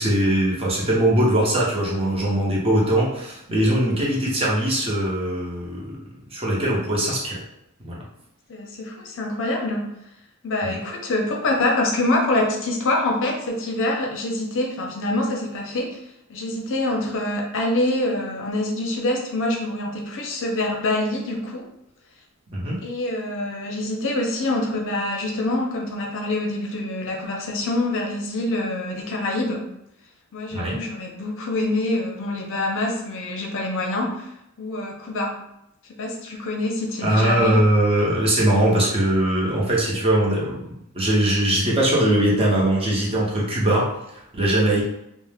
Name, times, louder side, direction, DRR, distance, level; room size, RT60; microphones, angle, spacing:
voice 1, 0.0-6.0 6.3-7.4 7.8-8.0 10.6-10.8 22.5-22.8 30.5-30.8 37.0-43.9 44.1-44.8, right 1 dB, 25° right, -5 dB, 0.7 m, -21 dB
voice 2, 8.5-9.8 10.4-16.0 16.3-21.7 22.8-29.6 30.3-34.3 34.6-35.3 36.0-37.6, left 2 dB, 60° left, 0 dB, 0.5 m, -25 dB
2.4 x 2.0 x 3.3 m, 0.81 s
head